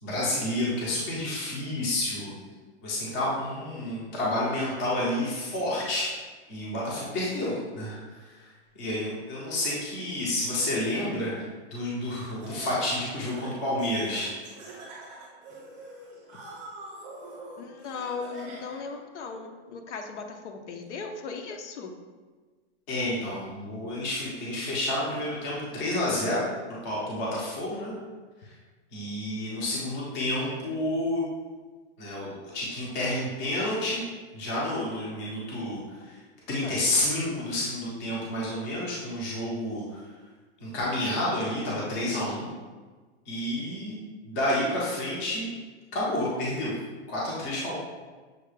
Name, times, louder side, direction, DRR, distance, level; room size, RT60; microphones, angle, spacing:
voice 1, 0.0-2.3 2.8-6.1 6.5-8.5 8.7-11.4 11.7-14.3 22.9-26.5 26.8-27.9 28.4-28.5 28.9-31.2 32.0-34.0 34.3-36.2 36.5-40.0 40.6-42.5 43.3-44.0 44.2-45.5 45.9-46.7 47.1-47.7, left 1 dB, 15° left, -6 dB, 0.4 m, -30 dB
Laughter, 12.1-18.9, right 2 dB, 20° right, 0.7 m, -45 dB
voice 2, 17.6-21.9 36.6-36.8, left 4 dB, 90° left, 4 dB, 0.8 m, -37 dB
6.2 x 2.2 x 3.2 m, 1.4 s
supercardioid pair, 175°, 34 cm